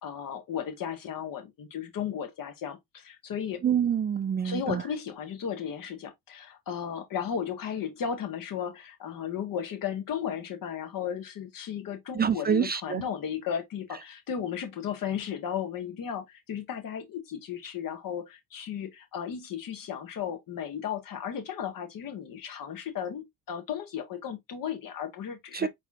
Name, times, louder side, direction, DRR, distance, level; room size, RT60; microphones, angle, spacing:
voice 1, 0.0-3.6 4.4-25.7, left 8 dB, 70° left, 1.6 m, -35 dB
voice 2, 3.6-4.8 12.1-13.0 25.5-25.7, right 8 dB, 30° right, 0.4 m, -26 dB
4.2 x 4.0 x 2.5 m
cardioid pair, 80°, 35 cm